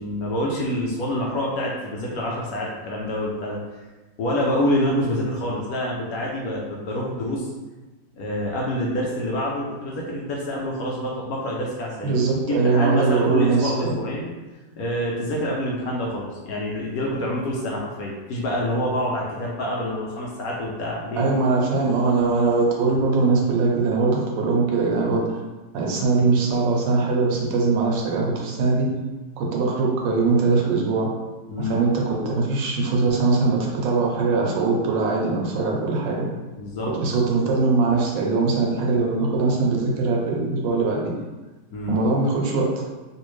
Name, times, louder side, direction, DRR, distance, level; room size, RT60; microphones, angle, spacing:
voice 1, 0.0-3.6 4.2-7.5 8.2-12.2 12.5-14.3 14.8-21.4 31.5-31.8 36.6-36.9 41.7-42.0, left 1 dB, 70° left, -3 dB, 0.9 m, -27 dB
voice 2, 12.0-14.0 21.2-25.4 25.7-28.9 29.4-31.1 31.6-36.2 36.8-41.1 41.9-42.8, right 4 dB, 80° right, -2 dB, 1.4 m, -21 dB
3.3 x 2.7 x 3.0 m, 1.2 s
omnidirectional pair, 2.0 m